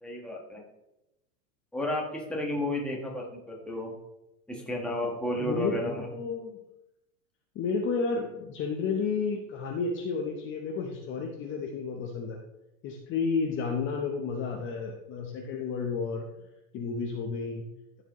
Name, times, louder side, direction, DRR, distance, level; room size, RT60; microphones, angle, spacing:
voice 1, 0.0-0.6 1.7-3.9 4.5-6.1, left 1 dB, ahead, -2 dB, 1.3 m, -32 dB
voice 2, 5.4-6.6 7.5-12.4 12.8-16.3 16.7-17.7, left 5 dB, 30° left, 1 dB, 0.8 m, -31 dB
13.5 x 5.0 x 3.0 m, 0.90 s
supercardioid pair, 145°, 43 cm